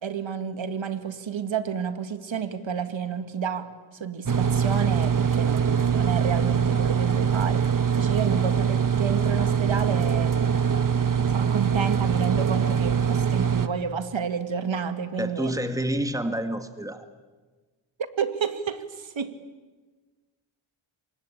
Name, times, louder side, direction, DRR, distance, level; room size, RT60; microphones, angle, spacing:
voice 1, 0.0-10.6 11.3-15.5 18.2-19.4, right 7 dB, 65° right, 10 dB, 2.2 m, -30 dB
sound 1, 4.3-13.7, right 7 dB, 40° right, 1.5 m, -23 dB
voice 2, 15.2-17.1, right 1 dB, 5° right, 8 dB, 2.0 m, -28 dB
28.0 x 24.5 x 8.7 m, 1.3 s
cardioid pair, 75°, 49 cm